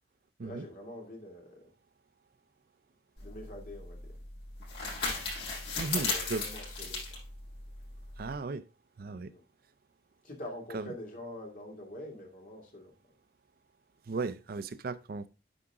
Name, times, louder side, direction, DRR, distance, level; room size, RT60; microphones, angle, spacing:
voice 1, 0.4-1.7 3.2-4.2 5.8-7.0 9.3-9.4 10.2-12.9, left 1 dB, 50° left, 2.5 m, -45 dB
sound 1, 3.2-8.4, left 4 dB, 70° left, 5.3 m, -36 dB
voice 2, 5.8-6.4 8.2-8.6 9.0-9.3 10.7-10.9 14.1-15.3, right 3 dB, 55° right, 0.5 m, -36 dB
9.9 x 4.9 x 3.6 m
head